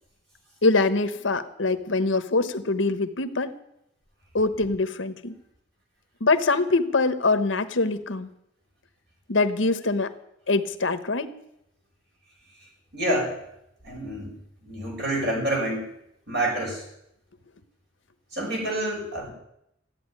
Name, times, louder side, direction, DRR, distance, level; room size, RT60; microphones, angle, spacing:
voice 1, 0.6-3.5 4.3-5.3 6.2-8.3 9.3-10.1 10.5-11.3, left 3 dB, 70° left, 11 dB, 1.1 m, -23 dB
voice 2, 12.9-13.4 13.8-14.4 14.6-15.9 16.3-16.8 18.3-19.3, right 1 dB, 60° right, -1 dB, 6.3 m, -27 dB
14.5 x 9.0 x 9.9 m, 0.80 s
head